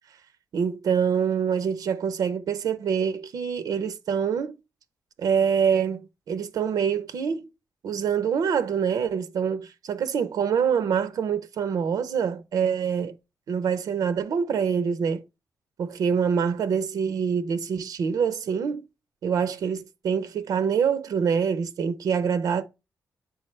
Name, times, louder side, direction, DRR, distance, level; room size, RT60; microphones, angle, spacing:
voice 1, 0.5-4.6 5.2-6.0 6.3-7.5 7.8-13.1 13.5-15.2 15.8-18.8 19.2-22.6, right 7 dB, 85° right, 0.7 m, -25 dB
7.8 x 5.0 x 3.2 m
wide cardioid pair, 145°, 6 cm